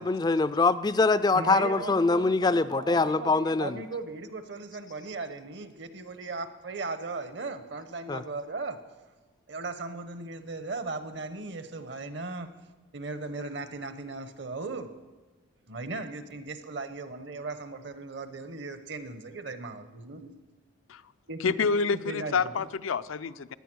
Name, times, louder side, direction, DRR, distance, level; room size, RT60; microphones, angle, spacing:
voice 1, 0.0-3.8 8.1-8.2, left 3 dB, 20° left, 14 dB, 0.3 m, -24 dB
voice 2, 1.3-8.8 9.5-12.5 12.9-14.9 15.7-20.3 21.3-22.5, right 3 dB, 60° right, 10 dB, 1.1 m, -37 dB
voice 3, 21.4-23.5, left 5 dB, 85° left, 13 dB, 0.5 m, -28 dB
16.5 x 10.0 x 6.2 m, 1.3 s
head